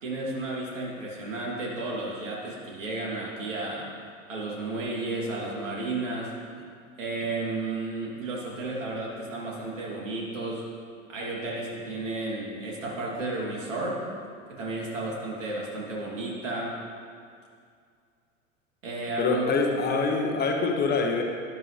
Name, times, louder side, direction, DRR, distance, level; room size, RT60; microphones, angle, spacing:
voice 1, 0.0-3.9 4.3-6.3 7.0-10.7 11.1-14.0 14.5-16.8 18.8-19.9, right 2 dB, 70° right, -4 dB, 3.1 m, -33 dB
voice 2, 19.2-21.2, left 4 dB, 25° left, 2 dB, 1.1 m, -25 dB
12.5 x 11.0 x 3.4 m, 2.3 s
figure-of-eight pair, 85°, 40 cm